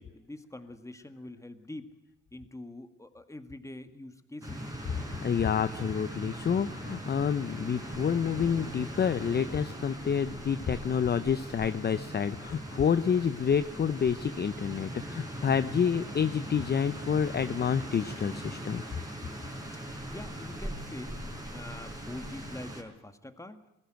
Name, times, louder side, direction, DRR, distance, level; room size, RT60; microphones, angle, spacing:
voice 1, 0.0-1.9 2.3-4.7 19.6-19.8 20.1-21.2 21.5-23.7, left 1 dB, 10° left, 9 dB, 1.9 m, -45 dB
sound 1, 4.4-22.8, right 1 dB, 10° right, 5.0 m, -40 dB
voice 2, 5.2-18.8, left 7 dB, 35° left, 13 dB, 0.7 m, -28 dB
20.5 x 15.5 x 9.2 m, 0.93 s
cardioid pair, 90°, 30 cm